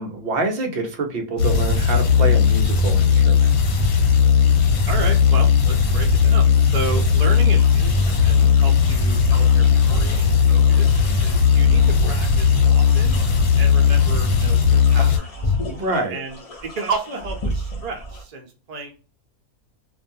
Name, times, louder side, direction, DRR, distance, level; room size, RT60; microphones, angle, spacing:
voice 1, 0.0-3.5 15.6-16.2, right 2 dB, 55° right, 3 dB, 0.7 m, -26 dB
sound 1, 1.4-15.2, left 6 dB, 75° left, 1.1 m, -17 dB
voice 2, 4.9-13.2 13.5-15.6 16.1-18.9, right 3 dB, 80° right, 2 dB, 0.3 m, -32 dB
sound 2, 7.3-18.2, equal, 55° left, 0.4 m, -32 dB
2.5 x 2.2 x 2.6 m, 0.33 s
omnidirectional pair, 1.6 m